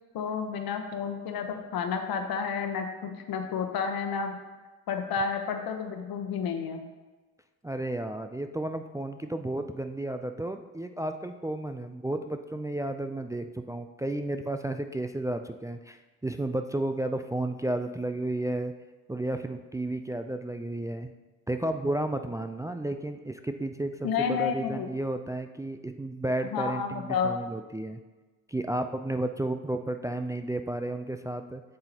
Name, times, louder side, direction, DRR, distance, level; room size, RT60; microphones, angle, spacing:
voice 1, 0.1-4.3 4.9-6.8 24.0-24.9 26.5-27.3, left 6 dB, 70° left, 6 dB, 1.0 m, -30 dB
voice 2, 7.6-18.7 19.1-21.1 21.5-28.0 28.5-31.6, right 1 dB, 10° right, 7 dB, 0.4 m, -32 dB
7.7 x 7.5 x 2.9 m, 1.2 s
supercardioid pair, 55°, 37 cm